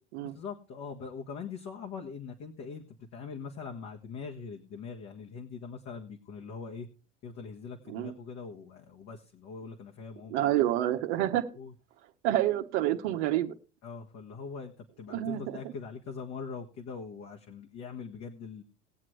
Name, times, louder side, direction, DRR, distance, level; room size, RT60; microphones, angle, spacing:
voice 1, 0.2-6.9 7.2-10.5 11.6-11.7 13.8-18.6, left 5 dB, 45° left, 1 dB, 1.6 m, -42 dB
voice 2, 10.3-11.5 12.2-13.5 15.1-15.6, right 13 dB, 70° right, 4 dB, 1.1 m, -28 dB
20.0 x 7.5 x 3.2 m, 0.36 s
hypercardioid pair, 90°, 35 cm